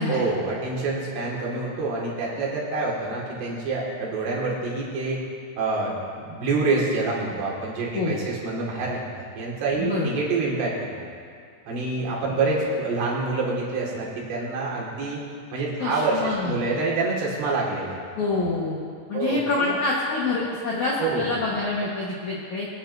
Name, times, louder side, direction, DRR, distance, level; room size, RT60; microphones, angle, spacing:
voice 1, 0.1-5.2 5.6-11.1 11.7-15.2 15.5-18.0 19.1-19.7 21.0-21.3, right 3 dB, 65° right, -4 dB, 4.0 m, -27 dB
voice 2, 9.8-10.1 15.8-16.6 18.2-18.8 19.1-22.7, left 3 dB, 75° left, -5 dB, 1.7 m, -26 dB
23.5 x 9.9 x 2.7 m, 2.2 s
omnidirectional pair, 5.5 m